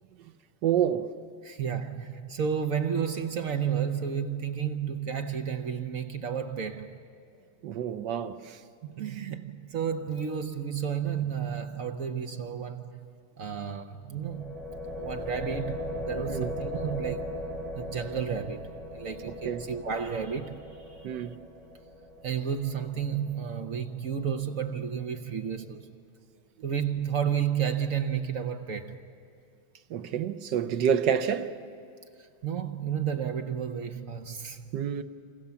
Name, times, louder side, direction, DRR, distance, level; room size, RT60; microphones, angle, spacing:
voice 1, 0.6-1.1 7.6-8.6 16.3-16.5 19.4-19.7 21.0-21.4 29.9-31.6 34.7-35.0, right 8 dB, 75° right, 1.5 m, -28 dB
voice 2, 1.4-7.0 8.8-13.1 13.4-14.6 14.9-17.4 17.7-21.1 22.2-25.9 26.6-29.0 32.2-34.8, right 7 dB, 55° right, 1.2 m, -32 dB
sound 1, 14.2-24.1, left 1 dB, 20° right, 4.6 m, -39 dB
28.0 x 26.5 x 7.0 m
omnidirectional pair, 2.0 m